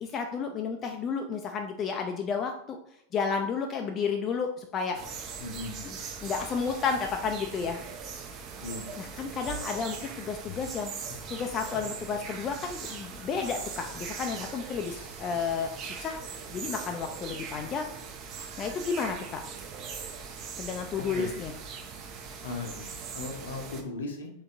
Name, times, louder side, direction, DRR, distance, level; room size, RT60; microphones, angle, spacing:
voice 1, 0.1-2.8 3.1-5.0 5.8-7.8 9.0-10.9 11.3-16.2 16.5-17.9 18.6-19.4 20.6-21.5, left 5 dB, 30° left, 4 dB, 0.3 m, -32 dB
sound 1, 4.9-23.8, right 5 dB, 35° right, 0.5 m, -41 dB
voice 2, 5.4-5.8 8.6-8.9 21.0-21.3 22.4-24.3, left 3 dB, 65° left, 3 dB, 0.7 m, -37 dB
sound 2, 9.5-10.2 10.5-10.8 11.1-11.3 11.7-12.0 12.3-12.4 12.8-13.0 13.6-14.2 14.8-15.6 16.0-16.3 16.8-16.9, right 1 dB, 80° right, 1.2 m, -47 dB
3.6 x 3.6 x 2.5 m, 0.71 s
figure-of-eight pair, 90°, 0 cm